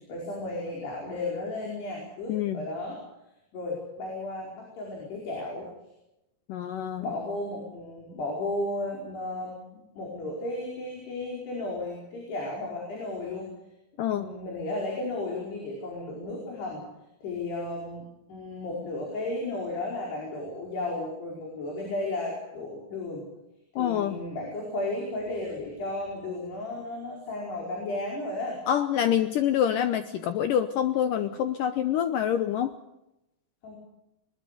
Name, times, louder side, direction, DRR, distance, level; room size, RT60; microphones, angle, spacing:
voice 1, 0.1-3.0 3.5-5.7 7.0-13.5 14.1-16.8 17.2-23.3 23.8-28.6 33.6-33.8, left 2 dB, 90° left, -2 dB, 7.0 m, -34 dB
voice 2, 2.3-2.6 6.5-7.1 14.0-14.3 23.8-24.2 28.7-32.7, left 10 dB, 70° left, 9 dB, 2.2 m, -26 dB
22.5 x 21.0 x 6.8 m, 0.89 s
omnidirectional pair, 4.6 m